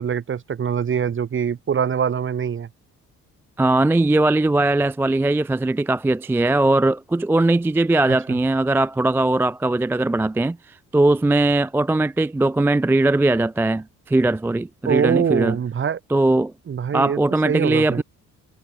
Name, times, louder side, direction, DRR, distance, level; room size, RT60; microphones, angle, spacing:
voice 1, 0.0-2.7 8.1-8.4 14.9-16.0 16.7-17.2 17.4-18.0, right 7 dB, 40° right, 1.3 m, -23 dB
voice 2, 3.6-15.6 16.1-16.5 16.9-18.0, right 2 dB, 10° right, 0.3 m, -20 dB
cardioid pair, 90°, 30 cm